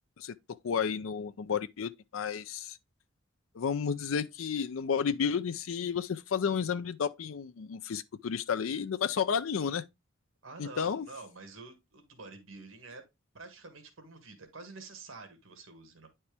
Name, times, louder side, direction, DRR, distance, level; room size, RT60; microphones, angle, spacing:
voice 1, 0.2-2.8 3.5-9.8 10.6-11.1, left 6 dB, 85° left, 0.5 m, -32 dB
voice 2, 10.4-13.0 13.3-16.1, right 3 dB, 85° right, 1.7 m, -48 dB
9.6 x 4.4 x 3.3 m
head